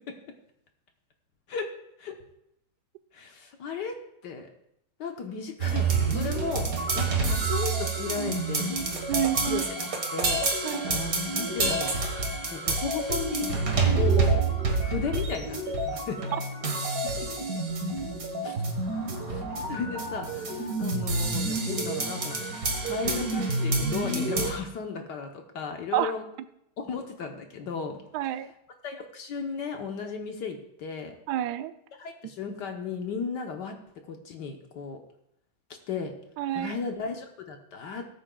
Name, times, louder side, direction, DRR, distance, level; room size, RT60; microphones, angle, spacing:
voice 1, 1.5-2.2 3.1-4.5 5.0-6.7 6.9-8.7 9.4-10.4 10.7-11.9 12.5-13.6 14.0-14.4 14.8-16.2 17.2-17.3 18.4-18.6 19.3-19.4 19.7-26.2 26.8-28.0 28.8-31.1 32.0-33.8 34.1-35.0 35.9-36.1 36.5-38.1, left 5 dB, 60° left, 4 dB, 1.4 m, -35 dB
sound 1, 5.6-24.5, right 3 dB, 45° right, 1.8 m, -28 dB
voice 2, 9.1-9.6 10.6-10.9 16.3-16.4 25.9-26.1 28.1-28.5 31.3-31.7 36.4-36.7, right 13 dB, 80° right, 12 dB, 0.9 m, -28 dB
19.5 x 8.8 x 2.3 m, 0.77 s
omnidirectional pair, 2.3 m